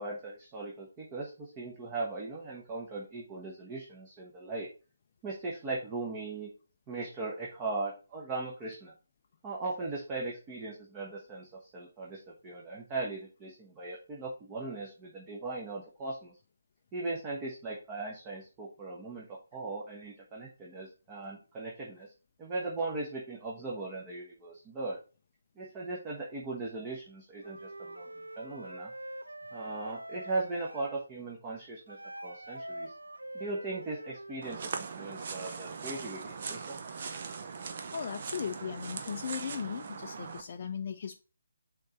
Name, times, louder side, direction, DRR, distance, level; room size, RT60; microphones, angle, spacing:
voice 1, 0.0-4.7 5.2-6.5 6.9-8.9 9.4-16.4 16.9-22.1 22.4-25.0 25.6-28.9 29.5-32.9 33.3-36.8, right 3 dB, 15° right, -3 dB, 1.1 m, -38 dB
Wind instrument woodwind instrument, 27.4-31.0 31.9-34.4, right 1 dB, 80° right, 0.4 m, -44 dB
sound 1, 34.4-40.4, right 5 dB, 40° right, 0.7 m, -40 dB
voice 2, 37.9-41.2, left 7 dB, 40° left, 5 dB, 0.4 m, -37 dB
5.2 x 3.9 x 5.4 m, 0.34 s
figure-of-eight pair, 145°, 0 cm